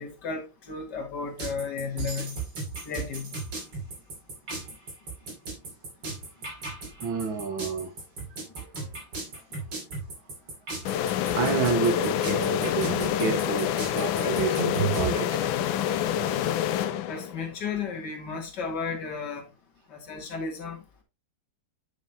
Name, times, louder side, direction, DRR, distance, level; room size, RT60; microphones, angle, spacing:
voice 1, 0.0-2.4 2.9-3.3 17.1-19.4 19.9-20.8, left 5 dB, 60° left, 2.3 m, -33 dB
sound 1, 1.4-15.1, right 5 dB, 70° right, 3.4 m, -35 dB
voice 2, 7.0-7.9 9.7-9.8 11.3-15.5, right 5 dB, 85° right, 2.3 m, -29 dB
sound 2, 10.9-17.5, left 10 dB, 85° left, 1.4 m, -27 dB
7.9 x 6.3 x 2.9 m
omnidirectional pair, 2.1 m